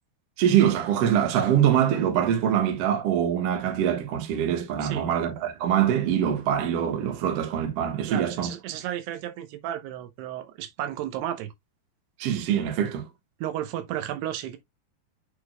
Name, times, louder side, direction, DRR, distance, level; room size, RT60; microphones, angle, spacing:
voice 1, 0.4-8.5 12.2-13.1, right 9 dB, 60° right, 1.7 m, -24 dB
voice 2, 4.8-5.1 8.1-11.5 13.4-14.6, right 11 dB, 85° right, 3.0 m, -33 dB
8.4 x 5.0 x 2.2 m
omnidirectional pair, 4.6 m